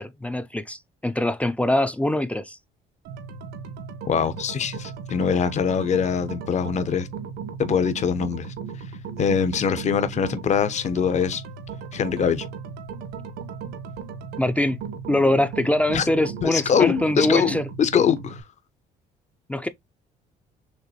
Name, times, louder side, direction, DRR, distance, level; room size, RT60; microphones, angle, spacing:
voice 1, 0.0-2.6 14.4-14.8 15.1-17.6 19.5-19.7, left 1 dB, 10° left, 0.5 m, -23 dB
sound 1, 3.0-18.4, right 6 dB, 80° right, 1.3 m, -36 dB
voice 2, 4.1-7.1 7.6-8.5 9.2-11.4 11.9-12.4 15.9-16.1 16.4-18.4, left 7 dB, 45° left, 0.9 m, -23 dB
6.6 x 2.6 x 2.9 m
cardioid pair, 110°, 17 cm